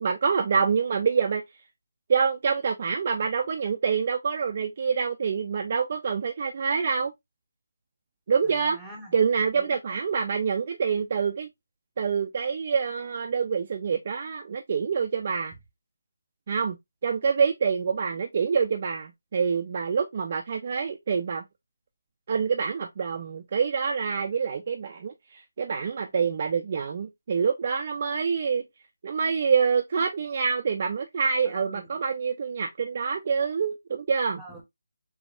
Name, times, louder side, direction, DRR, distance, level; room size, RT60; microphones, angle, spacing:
voice 1, 0.0-1.4 2.1-7.1 8.3-8.8 9.1-11.5 12.0-15.5 16.5-16.8 17.0-21.4 22.3-28.6 29.0-34.4, right 6 dB, 30° right, 0.3 m, -26 dB
voice 2, 8.5-9.1 9.5-9.9 31.5-31.9 34.4-34.6, right 1 dB, ahead, 0.7 m, -45 dB
3.4 x 3.1 x 2.4 m
hypercardioid pair, 175°, 0 cm